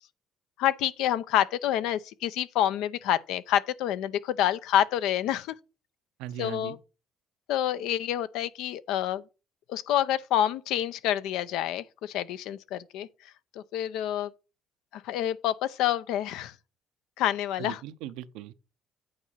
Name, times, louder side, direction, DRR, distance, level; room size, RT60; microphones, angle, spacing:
voice 1, 0.6-5.6 6.4-6.8 7.5-9.2 9.7-13.1 13.5-14.3 14.9-16.5 17.2-17.8, left 11 dB, 80° left, 0.6 m, -28 dB
voice 2, 6.2-6.8 17.6-18.5, right 13 dB, 90° right, 0.6 m, -39 dB
8.7 x 4.7 x 5.6 m
cardioid pair, 95°, 0 cm